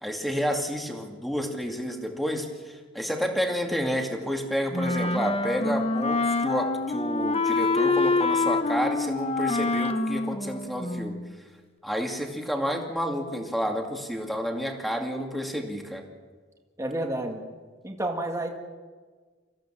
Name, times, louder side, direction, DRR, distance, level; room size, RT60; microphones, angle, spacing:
voice 1, 0.0-11.2 11.8-16.0, equal, ahead, 2 dB, 2.5 m, -30 dB
Wind instrument woodwind instrument, 4.7-11.3, left 3 dB, 30° left, 1.0 m, -26 dB
voice 2, 16.8-17.4 17.8-18.5, right 1 dB, 15° right, 1 dB, 2.0 m, -30 dB
26.5 x 15.5 x 7.6 m, 1.5 s
head